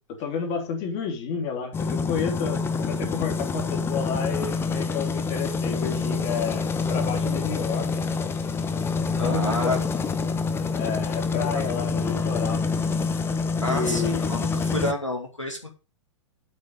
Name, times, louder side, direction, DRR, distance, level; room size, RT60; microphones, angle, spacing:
voice 1, 0.1-7.9 9.1-9.8 10.7-12.6 13.7-14.4, left 6 dB, 40° left, 3 dB, 3.2 m, -31 dB
sound 1, 1.7-14.9, left 4 dB, 15° left, 1.0 m, -26 dB
voice 2, 9.2-9.8 13.6-15.7, left 1 dB, 90° left, 3 dB, 2.1 m, -29 dB
8.3 x 5.4 x 6.6 m, 0.32 s
figure-of-eight pair, 105°, 16 cm